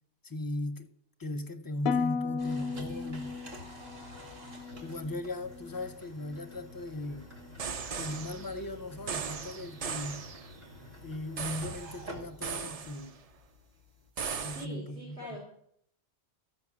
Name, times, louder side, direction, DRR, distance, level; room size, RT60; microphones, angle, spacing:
voice 1, 0.2-0.9 1.2-3.3 4.8-7.3 8.0-10.2 11.0-13.2 14.4-15.4, left 1 dB, 25° left, 0.5 m, -38 dB
Harp, 1.9-6.0 6.3-6.8 7.3-7.6, left 5 dB, 75° left, 0.8 m, -36 dB
sound 1, 2.4-14.1, left 1 dB, 70° right, 2.5 m, -49 dB
sound 2, 7.6-8.6 9.1-10.5 11.4-12.0 12.4-13.2 14.2-14.7, right 6 dB, 50° right, 0.5 m, -38 dB
voice 2, 14.5-15.4, right 1 dB, 90° right, 3.6 m, -43 dB
13.5 x 5.4 x 7.2 m
omnidirectional pair, 1.1 m